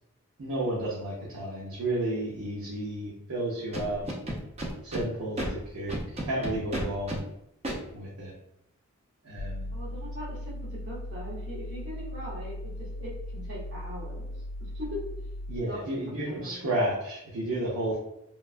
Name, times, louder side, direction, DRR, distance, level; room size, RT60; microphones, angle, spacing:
voice 1, 0.4-4.0 4.8-5.9 6.2-7.2 7.9-8.3 9.2-9.7 15.5-18.0, right 1 dB, 90° right, -5 dB, 0.6 m, -32 dB
Scratching (performance technique), 3.7-5.0 5.4-5.5 5.9-7.2 7.6-7.8, right 1 dB, 30° right, 0.5 m, -32 dB
sound 1, 9.4-15.6, left 1 dB, 80° left, 0.3 m, -38 dB
voice 2, 9.7-10.6 10.8-14.3 14.6-15.0 15.6-15.8 16.2-16.7, equal, 55° right, -7 dB, 1.0 m, -41 dB
3.1 x 2.2 x 2.4 m, 0.82 s
head